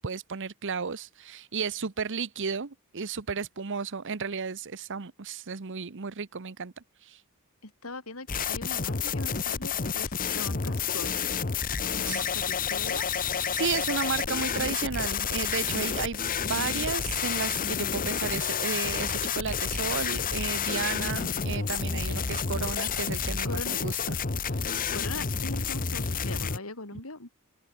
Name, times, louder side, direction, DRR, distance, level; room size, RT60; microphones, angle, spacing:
voice 1, 0.0-6.7 7.0-7.2 12.0-12.2 13.5-16.2 16.5-24.0, right 5 dB, 60° right, 0.9 m, -33 dB
voice 2, 7.6-11.2 11.9-13.1 23.4-23.8 24.0-24.1 24.9-27.3, left 2 dB, 70° left, 3.5 m, -40 dB
sound 1, 8.3-26.6, left 6 dB, 40° left, 1.1 m, -30 dB
open air
head